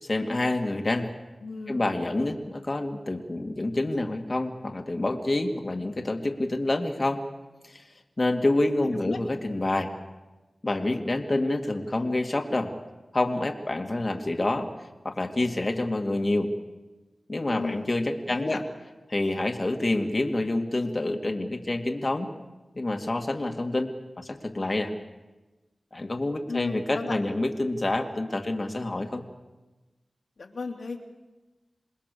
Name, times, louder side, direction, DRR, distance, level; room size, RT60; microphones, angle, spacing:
voice 1, 0.0-1.1 1.7-7.2 7.6-7.8 8.2-9.9 10.6-12.7 13.1-14.7 15.0-16.5 17.3-18.6 19.1-22.3 22.8-24.9 25.9-29.2, left 2 dB, 45° left, 3 dB, 2.3 m, -27 dB
voice 2, 1.4-1.9 8.8-9.2 17.5-17.9 18.2-18.6 26.5-27.2 30.4-31.0, left 3 dB, 80° left, 2 dB, 2.8 m, -33 dB
27.5 x 20.0 x 7.0 m, 1.1 s
cardioid pair, 45°, 0 cm